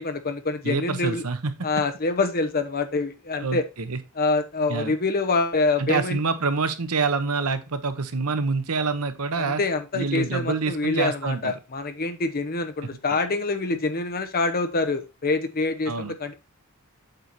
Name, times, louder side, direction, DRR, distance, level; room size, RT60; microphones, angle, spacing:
voice 1, 0.0-1.2 1.6-3.6 4.2-6.2 9.4-16.3, left 3 dB, 45° left, 7 dB, 1.0 m, -26 dB
voice 2, 0.6-1.5 3.4-4.0 4.7-4.9 5.8-9.6 9.9-11.6 13.1-13.2 15.9-16.1, right 4 dB, 85° right, 10 dB, 1.0 m, -26 dB
8.0 x 4.6 x 4.2 m, 0.27 s
head